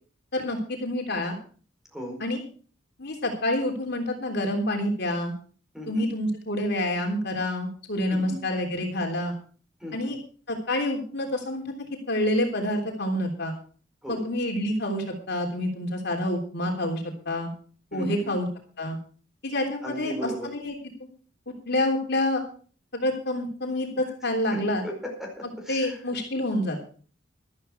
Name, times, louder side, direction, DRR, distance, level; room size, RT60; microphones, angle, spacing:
voice 1, 0.3-1.4 2.2-2.4 3.0-5.3 5.9-9.3 9.9-10.2 10.5-13.5 14.1-17.5 17.9-18.5 18.8-19.0 19.4-20.7 21.0-21.1 21.7-22.4 22.9-24.8 25.7-26.8, left 1 dB, 60° left, 2 dB, 3.4 m, -28 dB
voice 2, 5.7-6.1 8.1-8.4 9.8-10.1 14.0-14.2 17.9-18.3 19.8-20.5 24.5-25.9, equal, ahead, 1 dB, 4.7 m, -36 dB
13.5 x 13.0 x 4.6 m, 0.41 s
head